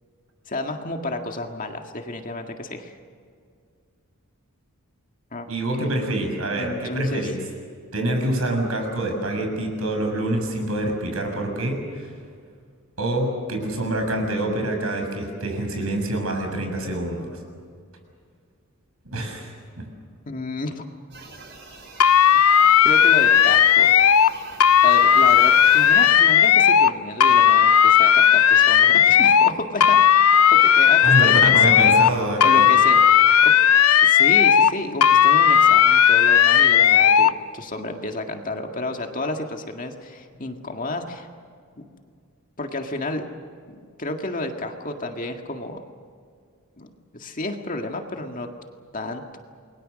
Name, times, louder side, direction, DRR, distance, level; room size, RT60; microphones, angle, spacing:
voice 1, 0.5-3.0 5.3-5.5 6.5-7.3 20.3-20.8 22.8-23.9 24.8-30.0 30.5-32.0 32.4-33.6 34.0-41.3 41.8-41.9 42.6-43.3 43.7-45.8 46.8-48.5 48.9-49.4, left 2 dB, 40° left, 4 dB, 1.9 m, -31 dB
voice 2, 5.5-7.4 7.9-12.1 13.0-17.4 19.0-19.9 31.0-32.9, right 1 dB, 75° right, 3 dB, 6.7 m, -26 dB
sound 1, 21.1-26.1, right 3 dB, 55° right, 6.6 m, -42 dB
sound 2, 22.0-24.3 24.6-26.9 27.2-29.5 29.8-32.1 32.4-34.7 35.0-37.3, left 8 dB, 80° left, 0.6 m, -15 dB
29.0 x 22.0 x 6.4 m, 2.2 s
head